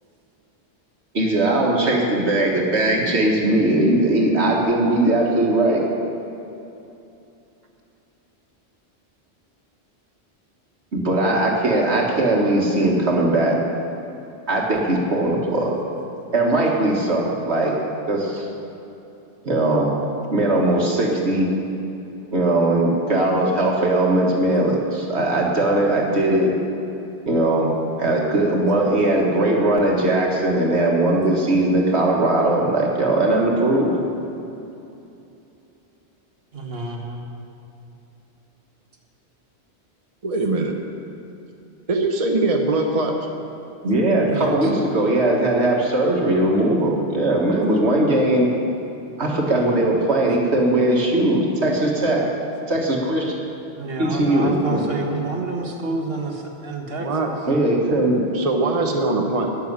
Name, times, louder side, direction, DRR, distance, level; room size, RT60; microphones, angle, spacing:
voice 1, 1.1-5.8 10.9-13.6 14.5-15.8 16.3-17.8 18.1-18.5 19.4-19.9 20.3-21.5 22.3-26.5 27.3-27.7 28.0-33.9 43.8-48.5 49.2-52.3 52.7-53.3 54.0-54.8 57.5-58.2, right 1 dB, 80° right, -2 dB, 2.1 m, -19 dB
voice 2, 36.5-37.3 44.3-44.7 53.7-57.4, right 3 dB, 60° right, 1 dB, 1.8 m, -29 dB
voice 3, 40.2-40.7 41.9-43.2 57.0-57.3 58.3-59.5, right 2 dB, 35° right, 2 dB, 1.0 m, -21 dB
12.5 x 6.9 x 9.6 m, 2.8 s
omnidirectional pair, 1.1 m